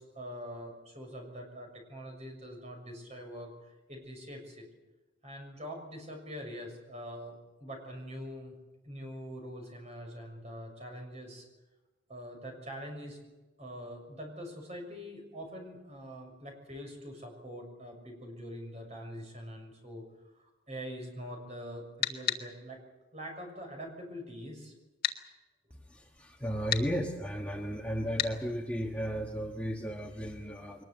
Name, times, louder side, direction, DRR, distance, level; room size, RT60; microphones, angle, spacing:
voice 1, 0.0-4.6 5.2-7.3 7.6-8.6 8.8-11.5 12.1-13.2 13.6-20.0 20.7-22.8 23.1-24.7, equal, 35° right, 2 dB, 6.5 m, -44 dB
sound 1, 22.0-22.4 25.0-25.2 26.7-26.9 28.2-28.3, left 9 dB, 50° left, 1.8 m, -30 dB
voice 2, 25.9-30.8, equal, 5° left, 1 dB, 1.3 m, -34 dB
22.5 x 20.5 x 7.8 m, 1.1 s
head